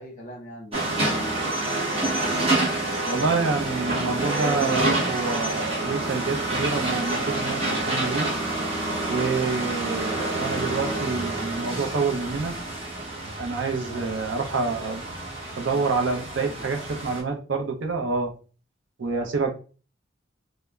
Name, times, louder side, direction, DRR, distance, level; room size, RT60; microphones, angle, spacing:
voice 1, 0.0-2.3 13.8-14.9 15.7-16.7, equal, 35° left, 0 dB, 0.8 m, -43 dB
sound 1, 0.7-17.2, right 2 dB, 30° right, 0.8 m, -28 dB
voice 2, 3.1-7.6 7.9-8.3 9.1-12.5 13.4-15.0 15.6-18.3 19.0-19.5, right 4 dB, 75° right, 3 dB, 0.5 m, -27 dB
3.1 x 2.0 x 2.3 m, 0.36 s
head